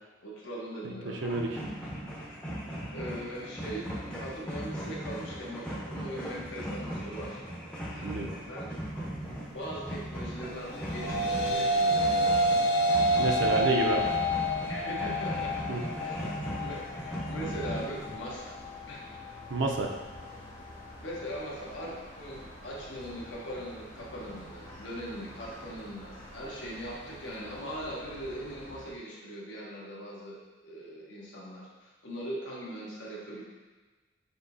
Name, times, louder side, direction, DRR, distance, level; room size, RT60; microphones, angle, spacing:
voice 1, 0.2-1.2 2.9-7.4 7.9-8.1 8.4-8.7 9.5-12.3 14.7-15.6 16.0-16.3 16.6-18.5 18.9-19.0 21.0-33.4, equal, 70° left, -4 dB, 1.0 m, -40 dB
voice 2, 0.8-1.6 8.0-8.3 13.2-14.0 15.7-15.8 19.5-19.9, right 2 dB, 70° right, 2 dB, 0.5 m, -29 dB
sound 1, 1.2-18.1, right 1 dB, 5° left, 0.6 m, -38 dB
sound 2, 10.7-19.8, equal, 50° left, 0.5 m, -29 dB
sound 3, 13.2-28.9, equal, 35° left, 1.0 m, -48 dB
6.4 x 2.8 x 2.6 m, 1.3 s
head